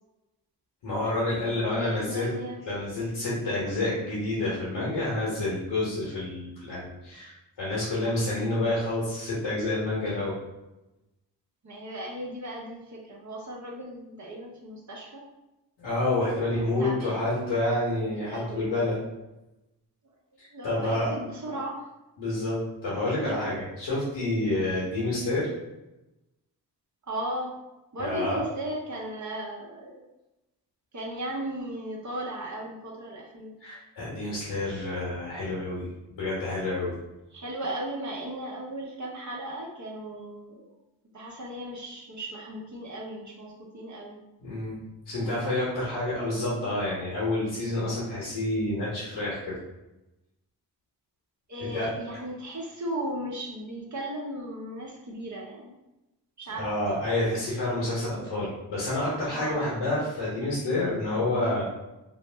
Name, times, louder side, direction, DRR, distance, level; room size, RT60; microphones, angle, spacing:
voice 1, 0.8-2.3 2.6-10.4 15.8-19.0 20.4-21.1 22.2-25.5 28.0-28.4 33.6-36.9 44.4-44.8 45.1-49.6 51.6-51.9 56.5-61.7, left 2 dB, 85° left, -7 dB, 1.0 m, -28 dB
voice 2, 1.4-2.6 11.6-15.2 16.5-17.7 18.2-18.9 20.5-21.9 23.2-23.4 24.5-24.6 27.1-27.6 27.9-30.1 30.9-33.5 37.3-40.6 41.1-44.2 51.5-55.8 56.4-56.7 59.3-59.8, right 1 dB, 40° right, -2 dB, 0.8 m, -36 dB
2.5 x 2.0 x 3.2 m, 0.98 s
cardioid pair, 45°, 43 cm